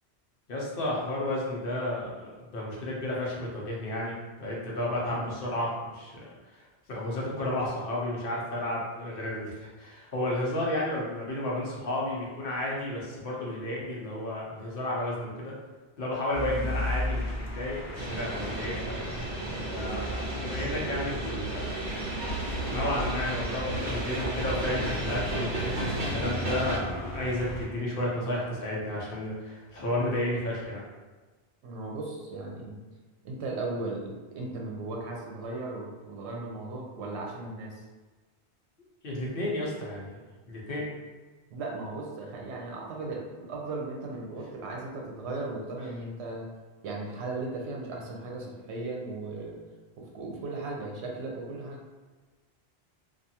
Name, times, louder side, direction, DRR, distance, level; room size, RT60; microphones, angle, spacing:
voice 1, 0.5-6.3 6.9-15.5 16.0-19.0 19.7-21.6 22.7-30.8 39.0-40.2 40.5-40.9, left 1 dB, 60° left, -4 dB, 0.8 m, -32 dB
sound 1, 16.3-27.7, left 1 dB, 25° left, 0.3 m, -37 dB
Moving Train, 17.9-26.8, right 1 dB, 50° right, 0.8 m, -33 dB
voice 2, 31.6-32.8 33.2-37.8 41.5-46.5 46.8-49.6 50.0-51.8, right 2 dB, 85° right, -1 dB, 0.9 m, -37 dB
2.5 x 2.3 x 2.7 m, 1.3 s
omnidirectional pair, 1.1 m